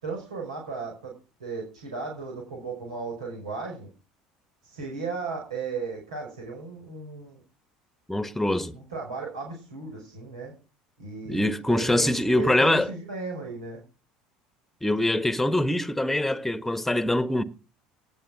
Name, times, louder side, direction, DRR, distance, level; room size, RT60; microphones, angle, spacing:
voice 1, 0.0-3.9 4.6-7.4 8.7-10.5 11.0-13.8, right 4 dB, 80° right, 5.6 m, -35 dB
voice 2, 8.1-8.7 11.3-12.9 14.8-17.4, left 1 dB, 5° left, 1.4 m, -24 dB
19.0 x 7.6 x 6.1 m
hypercardioid pair, 65°, 3 cm